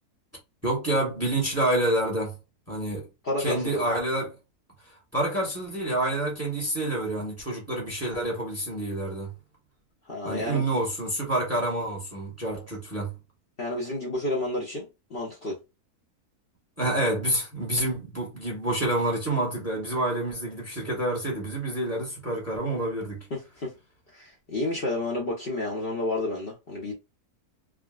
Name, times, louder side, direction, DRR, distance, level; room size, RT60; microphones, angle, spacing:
voice 1, 0.6-2.4 2.7-3.1 3.4-4.4 4.9-9.3 10.2-13.1 16.8-23.3, right 1 dB, 10° right, 1.0 m, -28 dB
voice 2, 3.2-3.9 10.1-10.6 13.6-15.6 23.3-23.7 24.1-26.9, left 2 dB, 45° left, 0.9 m, -30 dB
3.6 x 2.2 x 2.3 m
omnidirectional pair, 1.6 m